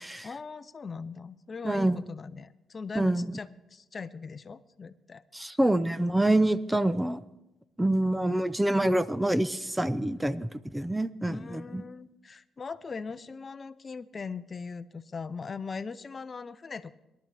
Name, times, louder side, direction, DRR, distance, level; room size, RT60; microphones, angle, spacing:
voice 1, 0.2-5.2 11.3-16.9, left 5 dB, 35° left, 14 dB, 0.6 m, -40 dB
voice 2, 1.6-2.0 3.0-3.3 5.3-7.2 7.8-11.8, right 1 dB, 10° right, 14 dB, 0.5 m, -26 dB
22.0 x 12.0 x 3.4 m, 0.95 s
cardioid pair, 90°, 0 cm